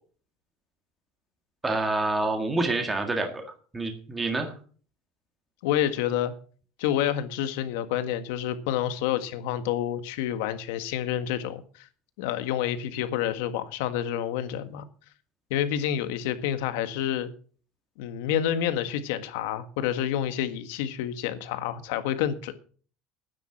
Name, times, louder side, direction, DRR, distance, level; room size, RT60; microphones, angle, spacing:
voice 1, 1.6-3.4 3.7-4.5, right 2 dB, 10° right, 4 dB, 1.8 m, -27 dB
voice 2, 5.6-6.3 6.8-11.9 12.2-14.8 15.5-17.3 18.0-22.6, left 10 dB, 85° left, 10 dB, 1.6 m, -28 dB
12.0 x 9.8 x 6.0 m, 0.43 s
cardioid pair, 160°, 0 cm